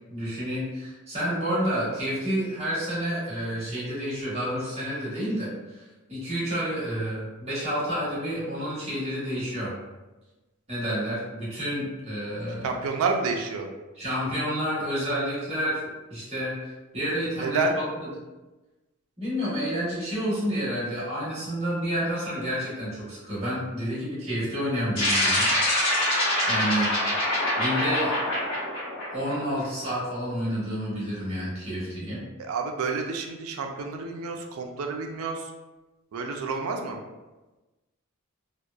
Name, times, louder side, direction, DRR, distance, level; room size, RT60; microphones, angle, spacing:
voice 1, 0.1-9.7 10.7-12.7 14.0-15.8 16.1-17.7 18.0-18.1 19.2-25.7 26.5-26.9 27.6-28.2 29.1-32.2, equal, 30° right, -8 dB, 1.0 m, -29 dB
voice 2, 12.6-13.7 17.4-17.7 32.4-35.5 36.1-37.0, right 4 dB, 75° right, 3 dB, 0.4 m, -29 dB
sound 1, 24.9-29.6, left 1 dB, 65° left, 1.0 m, -25 dB
2.7 x 2.1 x 2.3 m, 1.1 s
head